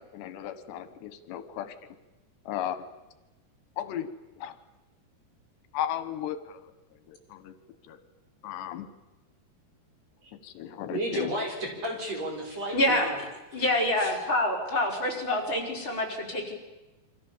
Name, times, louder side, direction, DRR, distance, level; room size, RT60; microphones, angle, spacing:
voice 1, 0.0-1.8 2.5-2.8 3.8-4.1 4.4-4.6 5.7-7.5 7.9-8.0 8.4-8.9 10.4-11.3, left 10 dB, 85° left, 11 dB, 3.5 m, -35 dB
voice 2, 10.9-13.2 14.0-14.2, right 1 dB, 40° right, 1 dB, 6.6 m, -33 dB
voice 3, 12.7-13.1 13.5-16.5, left 1 dB, 30° left, -1 dB, 6.0 m, -26 dB
28.5 x 25.0 x 7.4 m, 1.0 s
omnidirectional pair, 4.8 m